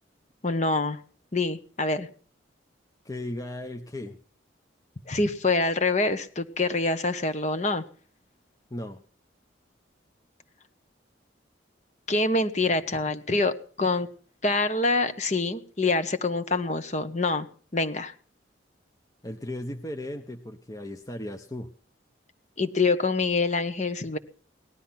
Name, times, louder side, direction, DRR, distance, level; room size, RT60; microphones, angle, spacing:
voice 1, 0.4-1.0 1.3-2.1 5.1-7.8 12.1-14.1 14.4-17.5 17.7-18.1 22.6-24.2, left 3 dB, 35° left, 10 dB, 1.2 m, -25 dB
voice 2, 3.0-4.2 8.7-9.0 19.2-21.7, left 1 dB, 20° left, 5 dB, 0.9 m, -36 dB
18.5 x 12.5 x 5.9 m, 0.42 s
head